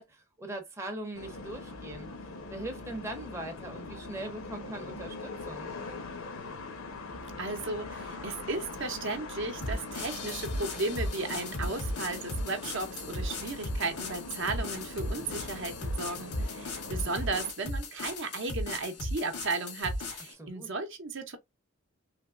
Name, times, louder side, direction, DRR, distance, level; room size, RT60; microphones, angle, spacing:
voice 1, 0.0-2.1 2.5-5.7 20.4-20.7, right 1 dB, 10° right, 0.6 m, -40 dB
sound 1, 1.1-17.5, left 3 dB, 65° left, 0.8 m, -42 dB
voice 2, 7.4-21.4, right 3 dB, 55° right, 0.7 m, -35 dB
sound 2, 9.6-20.3, left 1 dB, 90° left, 1.6 m, -36 dB
3.4 x 3.0 x 2.4 m
head